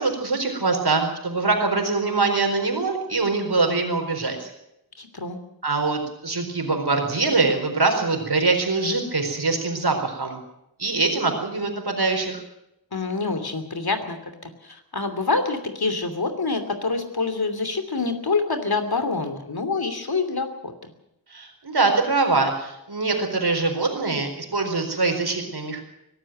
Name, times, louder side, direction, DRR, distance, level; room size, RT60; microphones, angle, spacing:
voice 1, 0.0-4.5 5.6-10.4 10.8-12.4 21.3-25.8, right 3 dB, 85° right, 4 dB, 4.5 m, -23 dB
voice 2, 5.0-5.4 12.9-20.7, left 3 dB, 75° left, 8 dB, 3.0 m, -26 dB
23.0 x 12.5 x 9.2 m, 0.84 s
wide cardioid pair, 55°, 38 cm